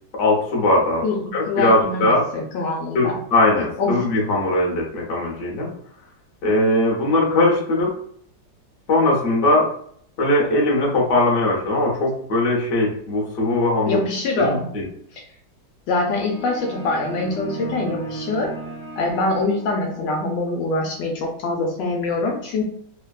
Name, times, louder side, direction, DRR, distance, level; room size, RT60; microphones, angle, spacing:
voice 1, 0.1-1.0 1.3-2.3 2.9-5.7 6.4-7.9 8.9-9.7 10.2-14.0 14.4-14.8, left 2 dB, 50° left, -3 dB, 1.0 m, -20 dB
voice 2, 1.5-3.2 3.8-3.9 13.9-14.7 15.9-18.5 19.0-22.6, left 2 dB, 75° left, 1 dB, 1.2 m, -24 dB
sound 1, 16.1-20.1, right 3 dB, 25° left, 1.0 m, -34 dB
3.4 x 2.2 x 2.3 m, 0.63 s
omnidirectional pair, 2.0 m